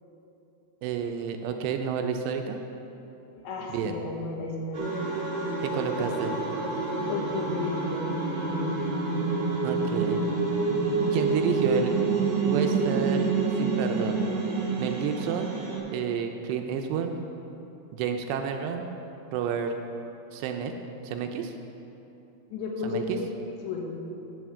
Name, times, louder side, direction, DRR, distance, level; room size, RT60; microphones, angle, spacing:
voice 1, 0.8-2.6 3.7-4.0 5.6-6.3 9.6-10.2 11.1-11.9 12.4-13.3 13.6-14.2 14.8-15.5 15.9-17.1 17.9-18.9 19.3-19.7 20.3-20.7 21.0-21.5 22.8-23.2, right 7 dB, 80° right, 5 dB, 2.7 m, -30 dB
voice 2, 3.4-4.9 7.1-8.1 8.5-8.8 9.0-9.1 22.5-23.3 23.6-23.9, left 3 dB, 80° left, 0 dB, 3.5 m, -33 dB
sound 1, 4.7-15.8, right 4 dB, 50° right, 2.0 m, -27 dB
10.0 x 7.8 x 6.1 m, 3.0 s
omnidirectional pair, 5.2 m